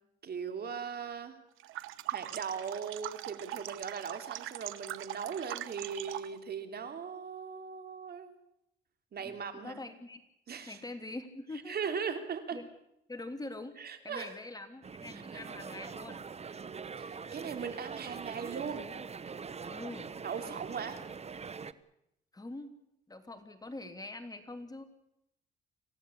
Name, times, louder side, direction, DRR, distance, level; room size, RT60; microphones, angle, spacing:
voice 1, 0.2-1.4 2.1-8.3 9.1-9.7 10.5-10.8 11.7-12.6 13.8-14.3 15.1-15.4 17.0-18.9 20.2-21.0, right 6 dB, 55° right, 7 dB, 2.9 m, -39 dB
sound 1, 1.6-6.4, right 14 dB, 90° right, 1.0 m, -41 dB
voice 2, 9.2-10.2 10.7-11.9 12.5-12.7 13.1-16.2 19.7-20.1 22.3-22.7 23.1-24.8, left 2 dB, 20° left, 7 dB, 2.8 m, -44 dB
sound 2, 14.8-21.7, right 5 dB, 30° right, 1.0 m, -43 dB
26.5 x 16.5 x 8.4 m, 0.81 s
cardioid pair, 90°, 20 cm